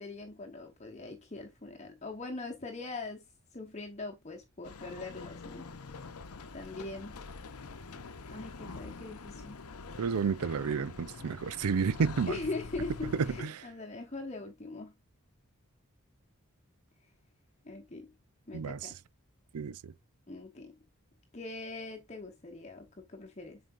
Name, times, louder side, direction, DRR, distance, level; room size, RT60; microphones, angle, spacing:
voice 1, 0.0-3.3 3.5-5.7 6.5-7.2 8.3-9.6 12.3-14.9 17.6-18.1 18.5-18.9 20.3-20.7 21.3-23.6, left 3 dB, 30° left, 1.0 m, -41 dB
sound 1, 4.6-13.4, left 4 dB, 85° left, 0.8 m, -45 dB
voice 2, 10.0-12.3 13.4-13.5 18.5-18.8 19.5-19.7, right 5 dB, 90° right, 0.5 m, -30 dB
7.4 x 5.1 x 2.5 m
head